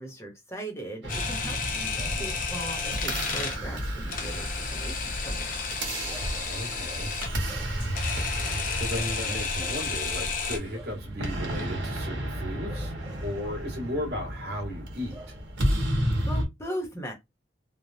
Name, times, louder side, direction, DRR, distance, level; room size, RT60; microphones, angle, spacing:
voice 1, 0.0-1.9 2.2-5.7 15.9-17.1, right 1 dB, 15° left, 0.8 m, -39 dB
sound 1, 1.0-16.5, equal, 80° right, 1.2 m, -33 dB
Camera, 1.1-10.6, left 4 dB, 45° left, 0.6 m, -32 dB
Bark / Livestock farm animals working animals, 1.9-3.8 6.1-7.8 8.9-9.9 10.7-11.1 12.7-13.7 15.1-15.5, right 1 dB, 15° right, 0.5 m, -48 dB
voice 2, 6.5-7.2 8.8-12.9 13.2-15.4, left 1 dB, 60° right, 1.4 m, -35 dB
3.3 x 2.1 x 2.6 m
head